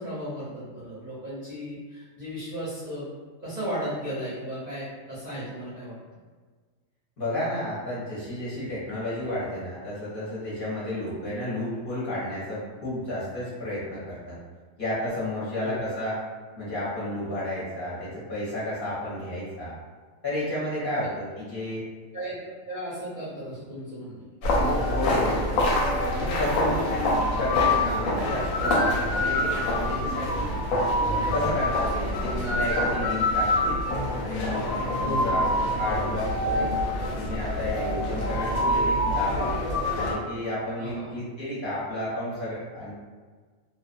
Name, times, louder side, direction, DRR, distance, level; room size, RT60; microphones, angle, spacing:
voice 1, 0.0-3.0 3.4-6.0 15.6-15.8 20.8-21.0 22.1-24.2 30.0-30.1 31.1-31.3 35.0-35.4 40.8-41.1, equal, 45° right, -11 dB, 0.6 m, -35 dB
voice 2, 7.2-14.4 14.8-16.2 16.6-19.8 20.2-21.8 24.9-25.7 26.1-26.8 27.4-30.5 31.3-33.8 34.2-36.7 37.0-39.5 40.0-42.9, left 1 dB, 50° left, -10 dB, 0.8 m, -32 dB
sound 1, 24.4-40.1, left 1 dB, 90° left, 1.0 m, -25 dB
2.3 x 2.3 x 2.4 m, 1.4 s
omnidirectional pair, 1.4 m